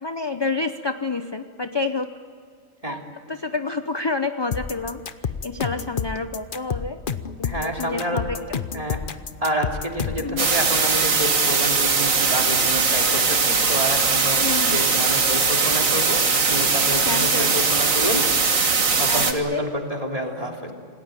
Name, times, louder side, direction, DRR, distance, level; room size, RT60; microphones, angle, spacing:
voice 1, 0.0-2.1 2.9-3.0 3.3-7.0 7.4-8.6 10.2-10.5 14.4-14.8 17.1-17.5 19.1-19.7, left 3 dB, 25° left, 8 dB, 0.6 m, -28 dB
sound 1, 4.5-10.3, left 6 dB, 45° left, 1.0 m, -29 dB
voice 2, 7.4-8.4 8.7-9.0 9.4-18.2 19.0-20.7, equal, 25° right, 1 dB, 3.2 m, -28 dB
sound 2, 10.4-19.3, right 4 dB, 85° right, 2.3 m, -20 dB
27.5 x 18.5 x 9.1 m, 2.2 s
omnidirectional pair, 1.4 m